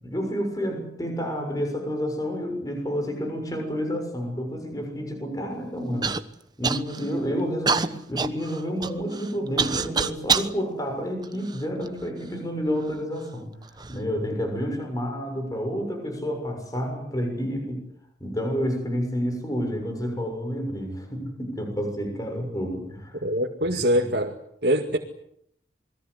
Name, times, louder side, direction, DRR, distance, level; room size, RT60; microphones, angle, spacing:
voice 1, 0.0-6.1 6.6-17.8 18.2-23.2 23.7-23.8, equal, 20° left, 3 dB, 6.7 m, -29 dB
Human voice / Cough, 6.0-6.2 6.6-7.1 7.7-10.5 11.2-12.1 12.8-12.9 13.6-14.0, right 5 dB, 20° right, 1.1 m, -26 dB
voice 2, 23.2-24.4 24.6-25.0, equal, 60° right, 3 dB, 2.2 m, -23 dB
28.5 x 21.5 x 8.2 m, 0.69 s
head